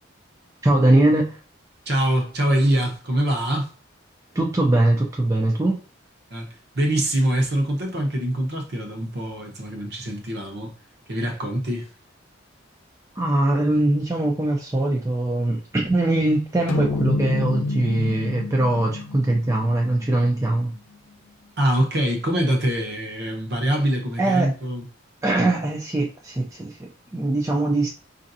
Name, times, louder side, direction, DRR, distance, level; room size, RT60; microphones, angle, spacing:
voice 1, 0.6-1.4 4.3-5.8 13.2-20.7 24.2-24.5 25.2-27.9, right 2 dB, 15° right, 0.4 m, -21 dB
voice 2, 1.9-3.7 6.3-10.7 11.1-11.9 21.6-24.8, right 1 dB, 50° right, 0.9 m, -24 dB
sound 1, 16.7-21.3, left 3 dB, 80° left, 0.6 m, -29 dB
5.0 x 2.6 x 2.6 m
head